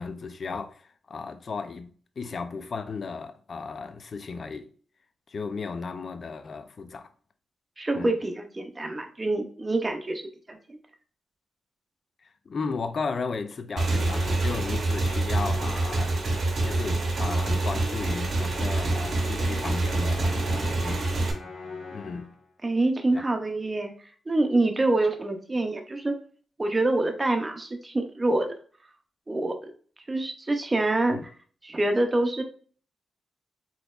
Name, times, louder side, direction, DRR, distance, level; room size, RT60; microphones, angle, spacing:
voice 1, 0.0-4.7 5.3-7.1 7.9-8.1 12.2-21.1 21.9-22.3 23.1-23.2 31.1-31.3, left 4 dB, 50° left, 0.4 m, -35 dB
voice 2, 7.8-10.8 22.6-23.9 24.3-26.1 26.6-28.5 29.3-29.7 30.1-31.2 31.6-32.4, right 2 dB, 25° right, 0.6 m, -26 dB
Motorcycle / Engine, 13.8-21.3, right 2 dB, 55° right, 0.8 m, -26 dB
Musical instrument, 13.9-22.4, left 4 dB, 85° left, 1.4 m, -41 dB
4.1 x 2.8 x 2.4 m
cardioid pair, 85°, 0 cm